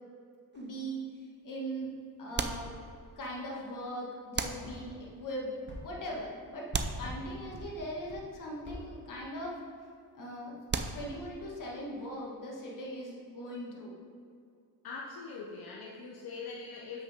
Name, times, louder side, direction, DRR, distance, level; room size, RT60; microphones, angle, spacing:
voice 1, 0.5-2.8 3.2-6.7 7.0-9.6 10.1-10.6 10.9-14.0, equal, 55° left, -3 dB, 1.9 m, -40 dB
sound 1, 0.5-1.1 2.3-3.3 4.3-5.2 6.7-7.8 10.7-11.5, right 5 dB, 30° right, 0.6 m, -37 dB
sound 2, 4.6-4.8 5.7-5.8 6.7-7.2 7.5-7.7 8.1-8.2 8.6-8.8, equal, 30° left, 1.9 m, -44 dB
voice 2, 14.8-17.0, left 4 dB, 75° left, -3 dB, 0.9 m, -42 dB
7.8 x 6.0 x 3.6 m, 2.3 s
cardioid pair, 80°, 37 cm